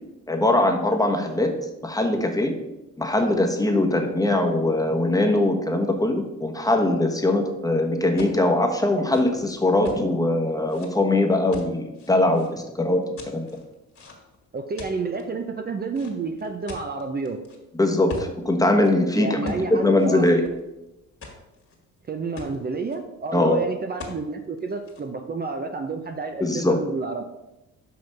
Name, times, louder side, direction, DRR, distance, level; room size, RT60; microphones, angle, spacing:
voice 1, 0.3-1.5 1.8-2.5 3.0-13.5 17.8-20.5 23.3-23.6 26.4-26.8, left 1 dB, 10° left, 3 dB, 1.2 m, -21 dB
sound 1, 8.2-8.4 8.9-10.0 10.7-10.9 11.5-12.5 13.2-14.4 14.8-15.2 15.9-17.6 18.1-18.3 18.7-18.9 19.4-19.7 20.0-20.8 21.2-21.8 22.1-22.2 22.4-23.0 24.0-24.2 24.6-25.0, left 3 dB, 45° left, 1.9 m, -40 dB
voice 2, 14.5-17.4 19.1-20.3 22.1-27.2, right 4 dB, 30° right, 5 dB, 0.7 m, -30 dB
5.7 x 5.6 x 5.3 m, 0.94 s
cardioid pair, 90°, 30 cm